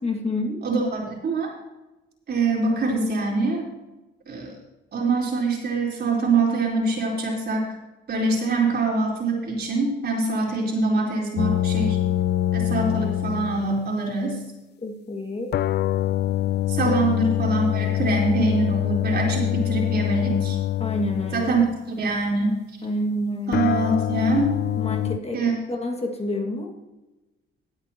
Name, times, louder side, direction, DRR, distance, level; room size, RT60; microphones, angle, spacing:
voice 1, 0.0-0.6 14.8-15.5 16.8-17.1 20.8-21.5 22.8-23.7 24.8-26.7, left 1 dB, 30° left, 1 dB, 2.1 m, -28 dB
voice 2, 0.6-1.5 2.3-3.6 4.3-4.5 4.9-7.7 8.1-12.0 12.5-14.4 16.7-20.6 21.3-21.6 22.0-22.6 23.5-24.6 25.3-25.5, right 3 dB, 55° right, -2 dB, 4.1 m, -24 dB
sound 1, 11.4-13.8 15.5-21.8 23.5-25.2, left 13 dB, 55° left, 0.4 m, -25 dB
18.0 x 8.7 x 3.0 m, 1.0 s
cardioid pair, 90°, 20 cm